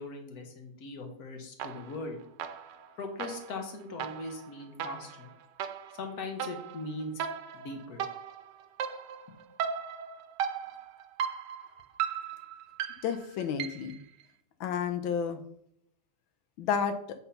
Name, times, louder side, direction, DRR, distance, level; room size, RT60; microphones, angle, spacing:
voice 1, 0.0-2.2 3.0-5.3 5.9-7.2 7.5-8.0, left 2 dB, 55° left, 4 dB, 1.7 m, -40 dB
sound 1, 1.6-2.1 2.4-14.0, right 8 dB, 70° right, 1.2 m, -37 dB
voice 2, 13.0-14.0 14.6-15.4 16.6-17.0, left 7 dB, 90° left, 7 dB, 1.5 m, -30 dB
8.2 x 4.2 x 5.6 m, 0.71 s
omnidirectional pair, 2.1 m